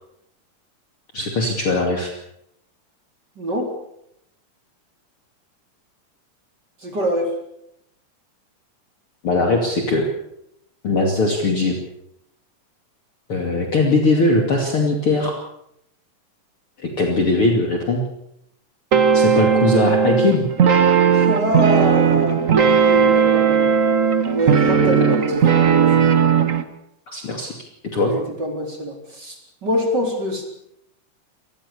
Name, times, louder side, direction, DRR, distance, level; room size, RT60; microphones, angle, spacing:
voice 1, 1.1-2.1 9.2-10.1 10.8-11.8 13.3-15.4 16.8-18.0 19.1-20.5 24.7-24.9 27.1-27.5 27.8-28.1, left 2 dB, 45° left, 2 dB, 3.3 m, -20 dB
voice 2, 3.4-3.7 6.8-7.3 21.1-23.7 24.3-26.3 28.0-30.5, equal, 30° right, 3 dB, 4.4 m, -25 dB
sound 1, 18.9-26.6, right 7 dB, 80° right, 0.7 m, -16 dB
27.0 x 20.0 x 6.9 m, 0.76 s
omnidirectional pair, 3.8 m